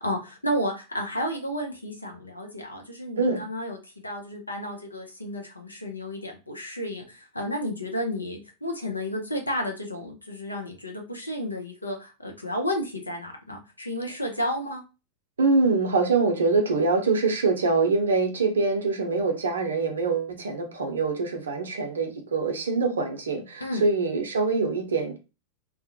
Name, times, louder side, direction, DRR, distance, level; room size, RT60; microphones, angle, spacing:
voice 1, 0.0-14.8 23.6-23.8, equal, 85° left, 2 dB, 0.5 m, -32 dB
voice 2, 15.4-25.2, right 4 dB, 70° right, 4 dB, 0.5 m, -24 dB
2.2 x 2.0 x 2.7 m, 0.29 s
figure-of-eight pair, 90°, 0 cm